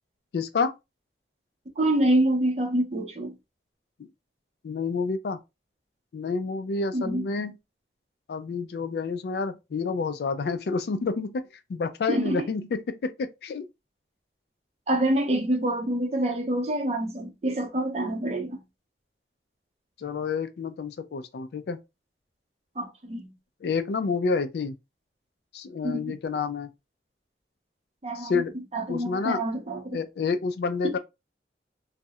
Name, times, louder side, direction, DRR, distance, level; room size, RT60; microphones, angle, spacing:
voice 1, 0.3-0.7 4.6-5.4 6.1-7.5 8.3-11.4 11.7-13.6 20.0-21.8 23.6-24.8 25.5-26.7 28.2-28.5 28.9-29.4 29.9-31.0, left 4 dB, 65° left, 0.3 m, -29 dB
voice 2, 1.8-3.3 6.9-7.3 12.1-12.5 14.9-18.6 22.8-23.3 25.8-26.1 28.0-28.4 28.7-30.0 30.8-31.0, right 1 dB, 35° right, 0.5 m, -26 dB
2.4 x 2.0 x 2.7 m
head